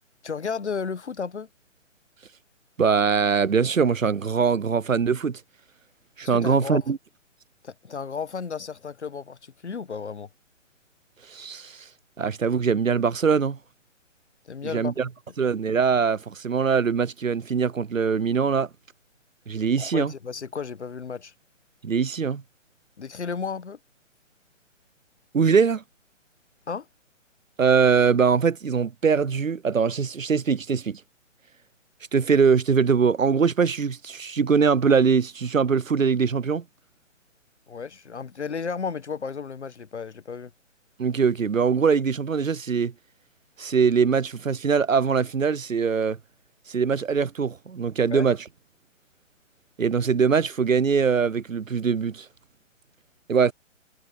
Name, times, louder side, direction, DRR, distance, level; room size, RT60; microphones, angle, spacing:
voice 1, 0.2-1.5 6.2-6.9 7.6-10.3 14.4-14.9 19.8-21.3 23.0-23.8 26.7-26.9 37.7-40.5 48.1-48.3, left 5 dB, 60° left, 1.2 m, -33 dB
voice 2, 2.8-5.4 6.2-7.0 11.3-11.8 12.2-13.6 14.7-15.1 15.4-18.7 19.5-20.1 21.8-22.4 25.3-25.8 27.6-31.0 32.1-36.6 41.0-42.9 43.6-46.2 46.7-48.4 49.8-52.3 53.3-53.5, right 6 dB, 85° right, 0.7 m, -22 dB
figure-of-eight pair, 140°, 38 cm